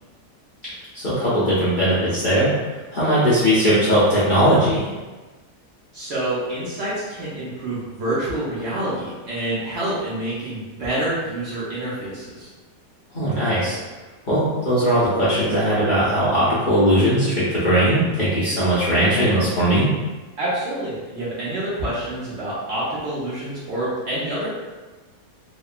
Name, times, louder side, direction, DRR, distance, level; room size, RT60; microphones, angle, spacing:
voice 1, 0.9-2.5 2.9-4.9 13.1-13.8 14.3-19.9, equal, 65° left, -11 dB, 0.5 m, -19 dB
voice 2, 5.9-12.5 20.4-24.5, right 1 dB, 60° right, -9 dB, 0.7 m, -27 dB
2.8 x 2.1 x 2.4 m, 1.3 s
omnidirectional pair, 1.7 m